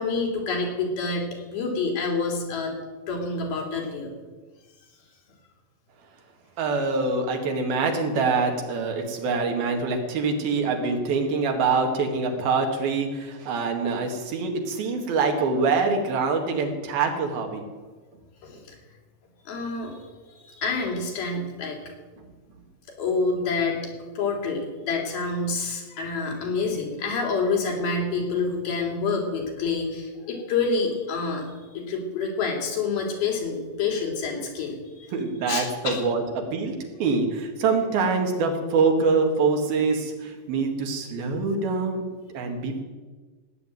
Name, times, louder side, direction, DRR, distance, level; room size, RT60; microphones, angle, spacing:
voice 1, 0.0-2.7 3.1-4.1 18.4-18.8 19.5-21.8 23.0-23.8 24.1-31.5 31.7-35.1 35.5-36.0, left 4 dB, 90° left, 0 dB, 4.9 m, -27 dB
voice 2, 6.6-17.7 22.2-22.3 35.1-42.0 42.3-42.8, right 4 dB, 80° right, 3 dB, 3.7 m, -25 dB
18.0 x 7.7 x 9.1 m, 1.3 s
omnidirectional pair, 4.2 m